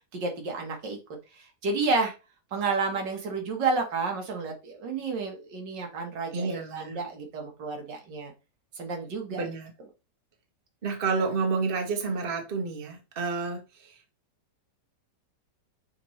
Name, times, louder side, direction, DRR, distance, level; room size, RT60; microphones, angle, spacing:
voice 1, 0.1-1.0 1.3-2.1 2.5-8.3 8.8-9.5, right 4 dB, 90° right, 2.1 m, -30 dB
voice 2, 6.3-7.0 9.3-9.7 10.8-13.9, right 4 dB, 35° right, 1.3 m, -30 dB
5.8 x 5.2 x 3.2 m
omnidirectional pair, 1.9 m